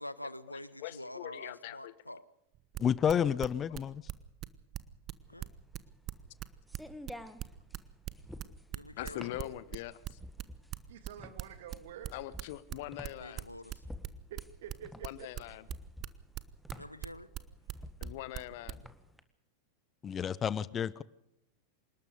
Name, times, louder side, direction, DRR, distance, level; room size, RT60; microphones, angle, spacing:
voice 1, 0.0-2.2 5.3-5.5 8.7-9.3 13.1-13.8 16.7-17.3, left 1 dB, 85° left, 17 dB, 1.0 m, -46 dB
voice 2, 0.8-1.9 9.0-10.2 12.1-13.4 15.0-15.6 18.0-18.9, left 15 dB, 50° left, 17 dB, 1.2 m, -42 dB
sound 1, 2.5-18.8, right 14 dB, 35° right, 1.1 m, -40 dB
voice 3, 2.8-4.0 20.0-21.0, left 8 dB, 25° left, 20 dB, 0.7 m, -30 dB
sound 2, 5.3-19.2, left 1 dB, ahead, 1.7 m, -50 dB
voice 4, 10.9-12.1 14.3-15.3, right 9 dB, 55° right, 10 dB, 2.3 m, -48 dB
28.0 x 19.5 x 5.1 m, 0.81 s
figure-of-eight pair, 90°, 0 cm